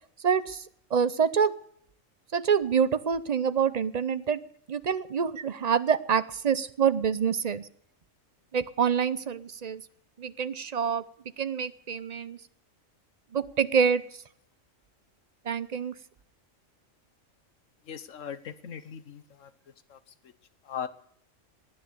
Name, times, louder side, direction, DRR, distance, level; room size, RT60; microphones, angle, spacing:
voice 1, 0.2-0.6 0.9-1.5 2.3-4.4 4.7-7.7 8.5-9.8 10.2-11.1 11.4-12.4 13.3-14.0 15.5-15.9, right 7 dB, 40° right, 14 dB, 0.6 m, -26 dB
voice 2, 17.9-19.5 19.9-20.0 20.7-20.9, left 8 dB, 75° left, 13 dB, 1.4 m, -38 dB
18.0 x 10.0 x 6.7 m, 0.66 s
omnidirectional pair, 1.3 m